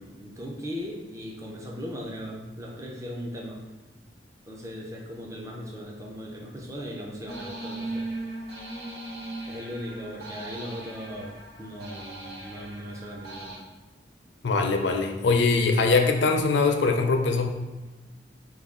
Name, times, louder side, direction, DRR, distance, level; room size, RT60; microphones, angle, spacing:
voice 1, 0.0-3.6 4.5-8.1 9.5-13.5, equal, 15° right, -2 dB, 0.5 m, -38 dB
sound 1, 7.2-13.6, right 2 dB, 60° right, 1.0 m, -38 dB
voice 2, 14.4-17.5, left 4 dB, 70° left, 4 dB, 0.5 m, -22 dB
4.8 x 2.3 x 3.6 m, 1.2 s
head